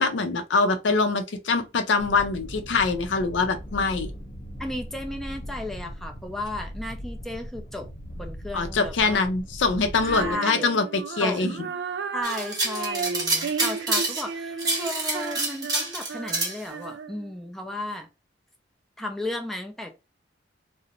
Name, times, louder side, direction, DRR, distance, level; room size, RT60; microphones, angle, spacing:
voice 1, 0.0-4.1 8.5-11.5, left 4 dB, 75° left, 0.5 m, -24 dB
sound 1, 2.0-10.4, equal, 50° left, 0.9 m, -39 dB
voice 2, 4.6-7.9 8.1-9.2 10.1-10.7 11.2-11.7 12.1-18.1 19.0-20.0, left 1 dB, ahead, 0.4 m, -34 dB
Female singing, 9.9-17.3, right 5 dB, 70° right, 0.4 m, -34 dB
sound 2, 12.2-14.3 14.6-16.6, right 2 dB, 20° right, 0.8 m, -27 dB
2.5 x 2.0 x 2.8 m
head